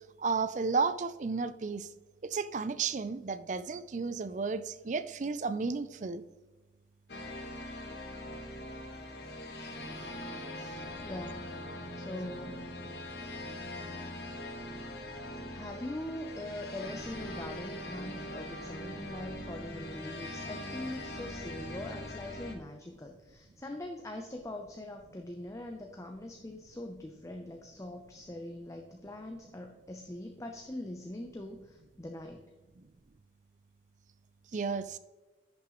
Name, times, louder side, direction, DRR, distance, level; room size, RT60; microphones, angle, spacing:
voice 1, 0.2-1.9 2.2-6.2 11.8-11.9 32.8-32.9 34.5-35.0, right 4 dB, 45° right, 13 dB, 0.4 m, -33 dB
sound 1, 7.1-22.6, left 1 dB, 60° left, 1.3 m, -42 dB
voice 2, 11.0-11.5 11.9-12.6 15.5-32.5, left 1 dB, 15° left, 3 dB, 0.6 m, -42 dB
10.5 x 6.6 x 3.0 m, 1.2 s
head